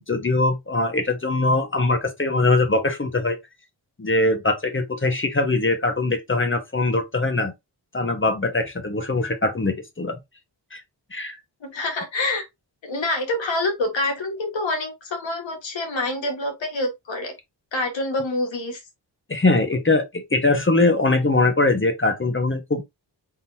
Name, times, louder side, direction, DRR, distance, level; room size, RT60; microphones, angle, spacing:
voice 1, 0.1-3.4 4.0-7.5 7.9-10.2 10.7-10.8 11.1-11.4 19.3-22.8, left 2 dB, 25° left, 1.2 m, -22 dB
voice 2, 11.6-12.5 12.8-17.3 17.7-18.8, left 2 dB, 80° left, 1.9 m, -26 dB
4.0 x 3.9 x 2.8 m
cardioid pair, 55°, 44 cm